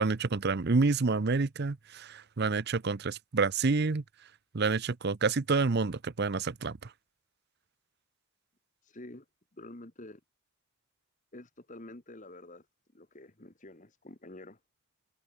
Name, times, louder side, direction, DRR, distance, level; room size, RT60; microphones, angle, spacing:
voice 1, 0.0-4.0 4.5-6.9, right 4 dB, 50° right, 0.6 m, -28 dB
voice 2, 8.8-9.2 9.5-10.2 11.3-12.7 12.9-14.6, left 1 dB, 35° left, 1.5 m, -48 dB
head